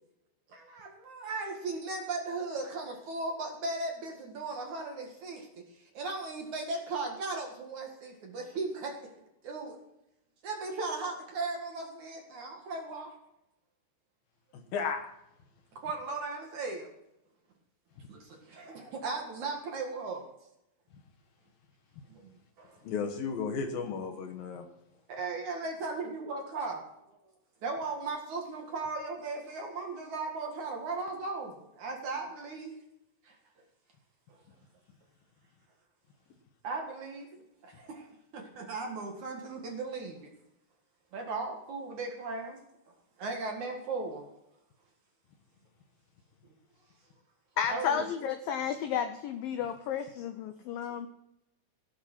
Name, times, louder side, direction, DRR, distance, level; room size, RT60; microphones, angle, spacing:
voice 1, 0.5-5.6 5.9-9.1 9.4-9.8 10.4-13.1 15.7-16.9 18.1-20.3 22.1-22.3 22.6-22.8 25.1-26.8 27.6-32.7 33.3-33.4 34.3-34.4 36.6-40.3 41.1-42.6 43.2-44.2 47.7-48.1 50.7-50.8, right 3 dB, 55° right, 2 dB, 2.6 m, -37 dB
voice 2, 14.7-15.0 22.8-24.7, left 5 dB, 65° left, 3 dB, 2.7 m, -33 dB
voice 3, 47.6-51.1, left 8 dB, 85° left, 9 dB, 2.0 m, -32 dB
17.0 x 8.7 x 6.1 m, 0.84 s
omnidirectional pair, 5.1 m